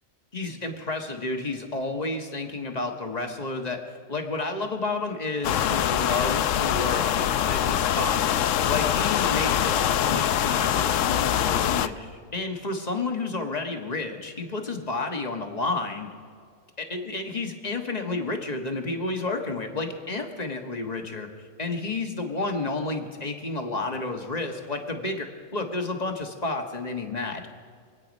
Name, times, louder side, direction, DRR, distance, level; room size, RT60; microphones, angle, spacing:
voice 1, 0.3-3.8 4.1-8.2 8.7-16.1 16.8-21.3 21.6-27.5, left 3 dB, 30° left, 4 dB, 1.6 m, -31 dB
sound 1, 5.4-11.9, left 10 dB, 80° left, 1.0 m, -24 dB
26.0 x 9.5 x 5.3 m, 2.2 s
omnidirectional pair, 1.3 m